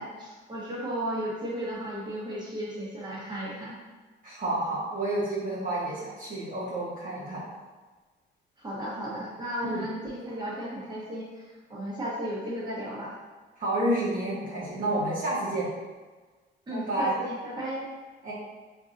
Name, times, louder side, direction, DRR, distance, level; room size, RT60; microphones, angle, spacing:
voice 1, 0.0-3.8 8.6-13.1 16.7-17.8, equal, 20° right, -6 dB, 1.2 m, -34 dB
voice 2, 4.2-7.4 9.6-9.8 13.6-15.7 16.7-17.1 18.2-18.3, right 1 dB, 45° right, -8 dB, 1.0 m, -29 dB
4.5 x 2.6 x 2.6 m, 1.3 s
cardioid pair, 90°, 20 cm